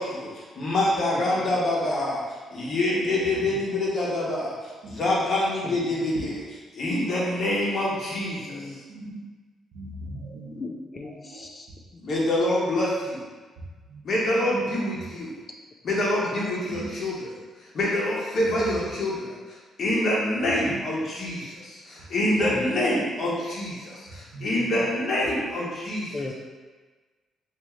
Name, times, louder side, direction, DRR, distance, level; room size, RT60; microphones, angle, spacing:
voice 1, 0.0-2.2 2.5-4.6 4.9-6.3 6.7-8.7 12.0-13.3 14.0-15.3 15.8-17.1 17.7-26.1, left 1 dB, 55° left, -5 dB, 1.1 m, -26 dB
voice 2, 1.1-1.5 3.0-3.2 5.6-6.2 7.0-7.1 8.4-8.8 10.5-11.7 11.9-12.2 22.5-22.6 26.1-26.3, left 3 dB, 35° left, 1 dB, 0.4 m, -38 dB
voice 3, 9.7-10.6 11.0-11.4 13.6-15.0 16.4-16.9 18.4-18.8 20.4-20.8 22.4-23.0 24.3-24.8 25.2-25.4, right 2 dB, 75° right, -3 dB, 0.8 m, -38 dB
3.1 x 2.7 x 3.6 m, 1.3 s
cardioid pair, 90°, 0 cm